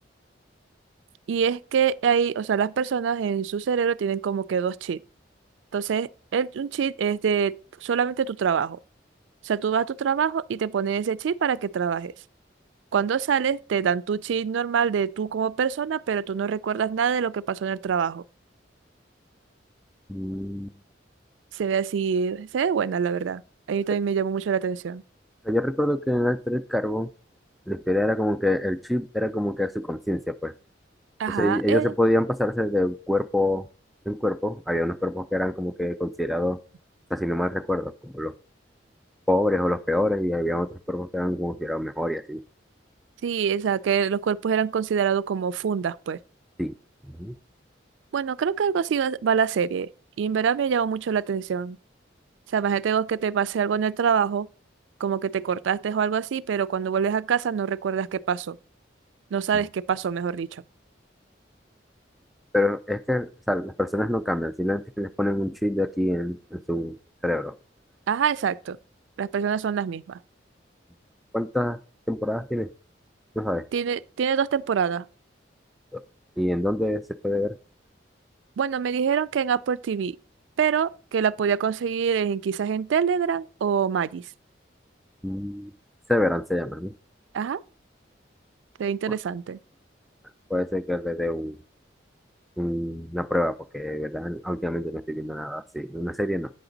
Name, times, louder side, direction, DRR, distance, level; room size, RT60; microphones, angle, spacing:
voice 1, 1.3-5.0 5.7-8.8 9.4-12.1 12.9-18.2 21.5-23.4 23.7-25.0 31.2-31.9 43.2-46.2 48.1-49.9 50.2-51.8 52.5-54.5 55.0-58.6 59.3-60.6 68.1-68.8 69.2-70.2 73.7-75.1 78.6-80.2 80.6-84.2 87.3-87.6 88.8-89.6, right 7 dB, 80° right, 0.3 m, -25 dB
voice 2, 20.1-20.8 25.4-27.1 27.7-30.5 31.3-33.7 34.1-36.6 37.1-38.3 39.3-42.4 46.6-46.7 47.1-47.3 62.5-67.0 67.2-67.5 71.3-71.8 72.1-72.7 73.4-73.6 75.9-76.0 76.4-77.6 85.2-85.7 86.1-86.9 90.5-91.6 92.6-96.5, left 1 dB, ahead, 0.3 m, -26 dB
8.5 x 5.9 x 3.9 m
head